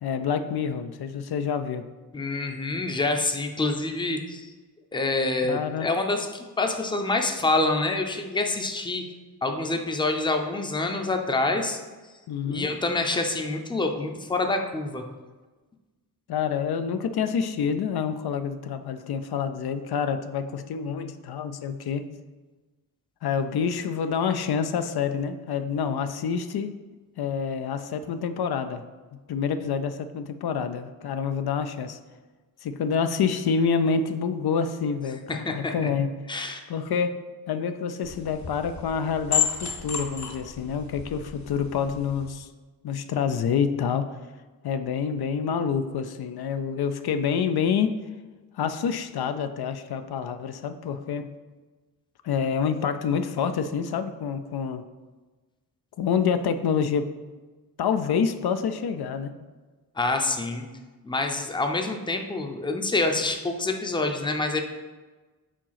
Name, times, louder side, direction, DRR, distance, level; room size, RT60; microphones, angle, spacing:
voice 1, 0.0-1.9 5.4-5.9 12.3-12.7 16.3-22.1 23.2-26.7 27.2-28.8 29.3-32.0 32.6-36.1 36.7-37.2 37.5-42.5 42.8-44.2 44.6-47.9 48.6-51.3 52.2-54.8 56.0-57.1 57.8-59.4, left 6 dB, 80° left, 9 dB, 0.5 m, -27 dB
voice 2, 2.1-4.5 4.9-9.0 9.4-11.8 12.4-15.0 35.3-35.9 36.3-36.6 60.0-60.6 61.0-64.6, left 2 dB, 15° left, 4 dB, 0.5 m, -27 dB
sound 1, 38.0-42.3, left 6 dB, 50° left, 0.8 m, -32 dB
5.1 x 3.8 x 5.7 m, 1.3 s
wide cardioid pair, 120°, 37 cm